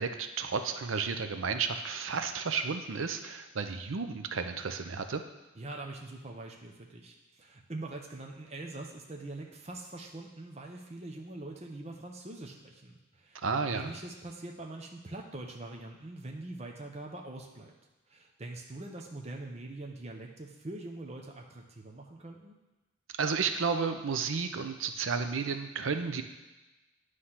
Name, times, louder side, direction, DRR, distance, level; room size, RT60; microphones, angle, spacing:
voice 1, 0.0-5.2 13.4-13.9 23.2-26.2, right 5 dB, 80° right, 8 dB, 0.6 m, -32 dB
voice 2, 5.6-17.7 18.1-22.6, right 2 dB, 35° right, 1 dB, 0.7 m, -43 dB
9.7 x 3.3 x 5.7 m, 1.1 s
head